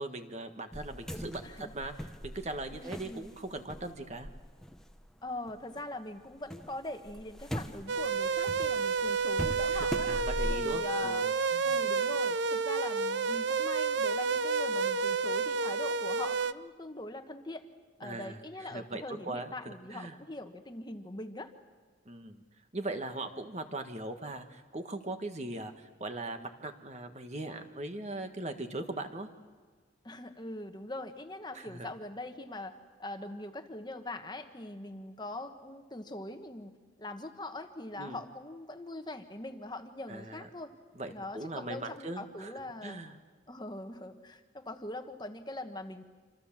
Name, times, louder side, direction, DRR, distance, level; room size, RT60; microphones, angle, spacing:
voice 1, 0.0-1.9 2.2-4.3 9.7-11.8 18.0-20.2 22.0-22.4 22.7-29.3 31.5-31.9 38.0-38.2 40.1-40.5 40.9-42.5 42.8-43.2, right 2 dB, 35° right, 7 dB, 1.6 m, -40 dB
sound 1, 0.7-5.8 6.2-10.6, equal, 5° left, 1.1 m, -41 dB
voice 2, 2.7-3.3 5.2-10.1 10.5-11.3 11.6-17.7 18.0-21.5 30.0-36.7 37.0-40.7 41.1-43.0 43.5-46.0, left 1 dB, 25° left, 7 dB, 1.3 m, -42 dB
sound 2, 7.9-16.5, right 4 dB, 70° right, 0.7 m, -30 dB
27.0 x 26.5 x 7.5 m, 1.5 s
head